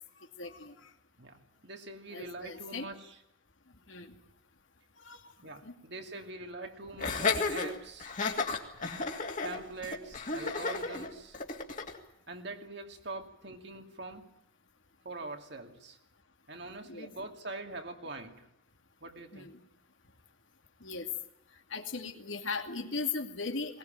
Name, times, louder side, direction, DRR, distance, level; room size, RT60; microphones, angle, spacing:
voice 1, 0.4-0.8 2.1-2.9 3.9-4.2 5.0-5.2 5.6-5.8 16.8-17.1 19.3-19.7 20.8-21.1 21.7-23.8, left 4 dB, 75° left, 5 dB, 2.5 m, -38 dB
voice 2, 1.2-3.2 5.4-8.1 9.4-11.4 12.3-14.3 15.0-16.0 16.5-18.5 19.0-19.5, right 2 dB, 60° right, 4 dB, 2.5 m, -43 dB
Laughter, 7.0-12.0, left 4 dB, 40° left, 2.7 m, -33 dB
21.0 x 19.5 x 9.0 m, 0.76 s
head